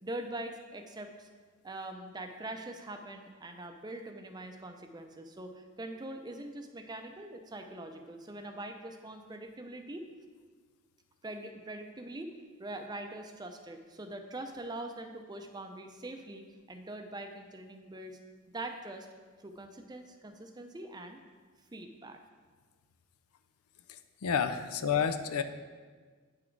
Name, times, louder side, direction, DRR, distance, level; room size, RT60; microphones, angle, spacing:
voice 1, 0.0-1.3 1.6-10.1 11.2-12.3 12.6-18.2 18.5-19.1 19.4-21.2 21.7-22.2 24.6-24.7, right 1 dB, 20° right, 6 dB, 0.5 m, -43 dB
voice 2, 24.2-25.4, left 7 dB, 85° left, 9 dB, 0.5 m, -29 dB
8.7 x 6.2 x 4.6 m, 1.5 s
head